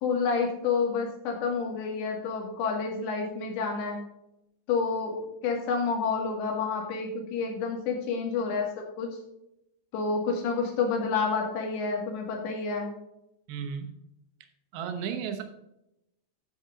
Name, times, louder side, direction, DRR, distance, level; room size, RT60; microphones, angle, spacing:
voice 1, 0.0-4.0 4.7-8.7 9.0-9.1 9.9-13.0, left 5 dB, 85° left, 0 dB, 4.3 m, -29 dB
voice 2, 13.5-13.9 14.7-15.4, right 7 dB, 70° right, 6 dB, 2.7 m, -33 dB
10.5 x 7.1 x 3.8 m, 0.83 s
omnidirectional pair, 5.0 m